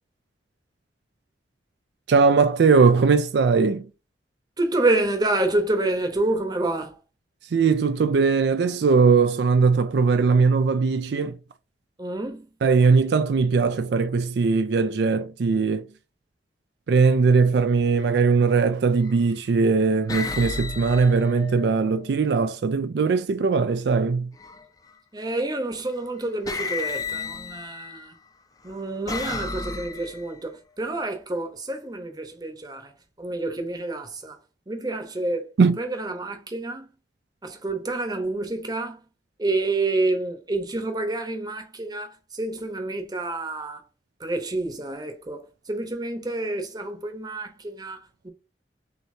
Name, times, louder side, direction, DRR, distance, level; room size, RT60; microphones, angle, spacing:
voice 1, 2.1-3.9 7.5-11.4 12.6-15.8 16.9-24.3 35.6-35.8, right 4 dB, 70° right, 0.4 m, -20 dB
voice 2, 4.6-7.0 12.0-12.5 25.1-28.1 28.6-32.9 33.2-34.4 34.7-35.5 35.8-36.9 37.4-39.0 39.4-43.8 44.2-48.3, right 2 dB, 25° right, 0.9 m, -28 dB
sound 1, 17.8-18.1 19.0-19.5 20.1-22.1 24.3-24.9 25.9-26.1 26.5-28.1 28.7-30.4, left 4 dB, 20° left, 0.6 m, -33 dB
6.4 x 2.9 x 2.7 m
head